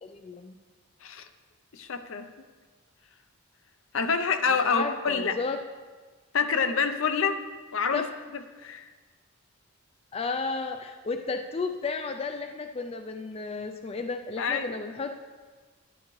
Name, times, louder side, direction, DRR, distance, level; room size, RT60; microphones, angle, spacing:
voice 1, 0.0-0.5 4.6-5.6 7.9-8.0 10.1-15.2, left 4 dB, 30° left, 7 dB, 0.3 m, -33 dB
voice 2, 1.7-2.2 3.9-5.4 6.3-7.4 7.7-8.0 8.6-8.8 14.4-14.8, left 5 dB, 70° left, 9 dB, 0.6 m, -26 dB
11.5 x 10.5 x 3.2 m, 1.4 s
head